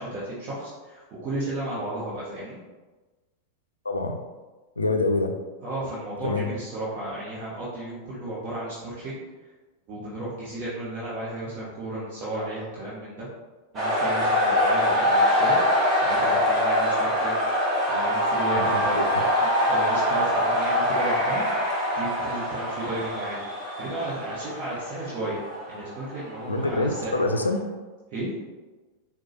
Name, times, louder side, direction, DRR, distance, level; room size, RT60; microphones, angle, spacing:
voice 1, 0.0-2.6 5.6-9.2 9.9-13.3 13.7-17.4 17.9-19.0 19.7-21.4 22.0-23.4 23.8-25.4 25.7-27.1 28.1-28.3, right 1 dB, 40° right, -8 dB, 0.9 m, -34 dB
voice 2, 3.9-4.2 4.8-5.3 6.2-6.5 18.5-19.1 26.5-27.6, left 2 dB, 80° left, 5 dB, 0.3 m, -26 dB
sound 1, 13.8-27.6, equal, 20° right, 1.1 m, -24 dB
4.7 x 2.2 x 2.8 m, 1.3 s
figure-of-eight pair, 90°, 0 cm